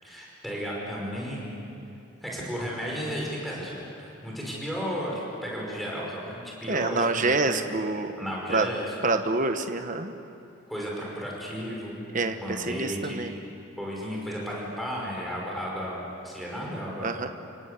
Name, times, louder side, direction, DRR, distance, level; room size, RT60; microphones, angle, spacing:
voice 1, 0.0-1.6 2.2-7.8 8.2-8.9 10.7-12.0 12.4-13.4 13.8-17.2, equal, ahead, -4 dB, 5.4 m, -34 dB
voice 2, 6.7-8.1 8.5-8.7 9.0-10.1 12.1-13.3 17.0-17.3, right 3 dB, 40° right, 7 dB, 1.1 m, -26 dB
29.5 x 18.0 x 8.3 m, 2.7 s
head